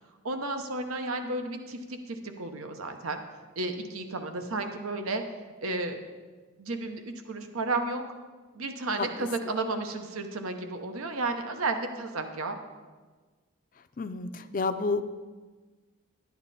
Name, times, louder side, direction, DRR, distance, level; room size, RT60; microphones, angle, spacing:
voice 1, 0.2-3.2 3.6-5.2 5.6-6.1 6.6-8.0 8.5-12.6, right 2 dB, 90° right, 6 dB, 0.9 m, -32 dB
voice 2, 14.0-15.0, left 3 dB, 40° left, 10 dB, 0.4 m, -29 dB
11.5 x 9.5 x 4.2 m, 1.4 s
head